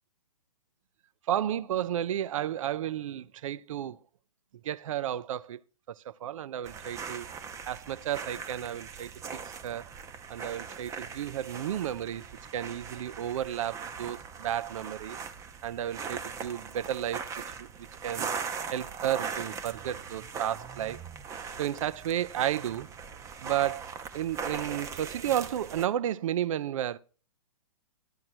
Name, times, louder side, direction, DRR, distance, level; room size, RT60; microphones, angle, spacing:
voice 1, 1.3-4.0 4.6-5.6 5.9-7.3 7.7-9.1 9.4-9.9 10.3-12.3 12.5-15.2 15.6-17.3 17.6-18.3 18.7-21.0 21.6-22.9 23.4-23.9 24.1-27.0, right 11 dB, 65° right, 0.5 m, -32 dB
sound 1, 6.6-25.8, right 6 dB, 15° right, 0.6 m, -40 dB
11.0 x 7.6 x 4.3 m
hypercardioid pair, 135°, 18 cm